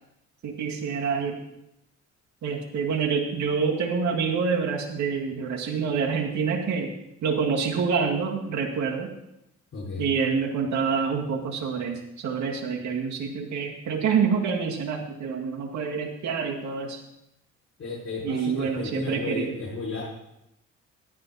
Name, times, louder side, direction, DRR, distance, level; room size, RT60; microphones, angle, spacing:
voice 1, 0.4-1.4 2.4-6.9 7.2-9.1 10.0-17.0 18.2-19.5, right 5 dB, 70° right, -1 dB, 2.1 m, -27 dB
voice 2, 9.7-10.1 17.8-20.0, left 4 dB, 50° left, -7 dB, 5.3 m, -34 dB
13.0 x 11.0 x 4.1 m, 0.85 s
cardioid pair, 90°, 30 cm